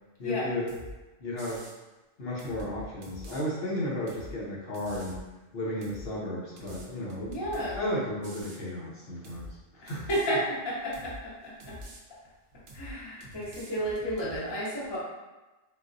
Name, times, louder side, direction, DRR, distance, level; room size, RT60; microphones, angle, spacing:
voice 1, 0.2-0.7 1.2-1.7 2.2-5.2 5.5-7.4 7.7-10.1, left 1 dB, 60° left, -6 dB, 1.0 m, -34 dB
sound 1, 0.7-0.9 1.4-1.8 2.4-3.4 4.1-4.3 4.7-5.2 5.8-6.1 6.6-7.8 8.2-8.6 9.2-9.5 9.9-10.3 10.9-11.2 11.6-12.0 12.7-12.9 13.2-14.4, left 1 dB, 60° right, 0.6 m, -45 dB
voice 2, 7.3-7.8 9.8-11.8 12.7-15.0, equal, 30° left, -7 dB, 0.6 m, -32 dB
3.9 x 2.1 x 2.5 m, 1.1 s
omnidirectional pair, 1.2 m